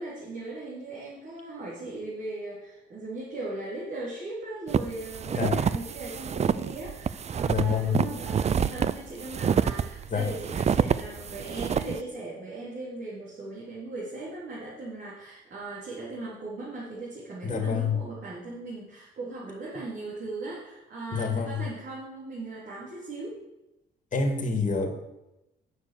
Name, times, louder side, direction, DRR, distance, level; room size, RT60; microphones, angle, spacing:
voice 1, 0.0-23.4, right 2 dB, 55° right, -7 dB, 3.7 m, -38 dB
sound 1, 4.7-12.0, right 7 dB, 35° right, 0.4 m, -28 dB
voice 2, 7.5-8.0 10.1-10.3 17.4-18.0 21.1-21.6 24.1-24.9, left 5 dB, 40° left, 4 dB, 2.0 m, -27 dB
9.4 x 6.6 x 7.0 m, 0.93 s
cardioid pair, 90°, 20 cm